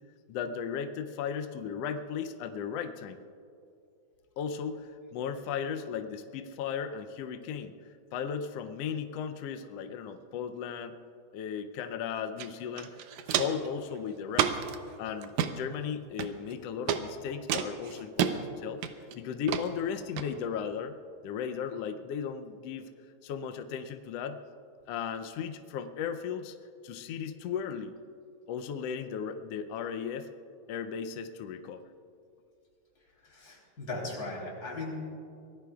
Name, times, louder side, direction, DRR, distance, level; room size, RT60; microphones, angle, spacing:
voice 1, 0.3-3.2 4.4-7.7 8.1-11.0 11.3-12.9 13.3-14.6 15.0-18.8 19.2-20.9 21.2-22.9 23.2-24.4 24.9-26.5 26.8-27.9 28.5-30.3 30.7-31.9, left 7 dB, 75° left, 7 dB, 1.5 m, -36 dB
Walk footsteps, 12.4-12.5 12.8-13.7 14.3-14.8 15.2-15.5 16.2-16.5 16.9-17.0 17.5-18.3 18.8-19.1 19.5-19.6 20.2-20.3, right 9 dB, 85° right, 2.2 m, -29 dB
voice 2, 33.2-35.0, left 2 dB, 30° left, -3 dB, 3.9 m, -38 dB
24.5 x 18.5 x 2.3 m, 2.5 s
omnidirectional pair, 3.3 m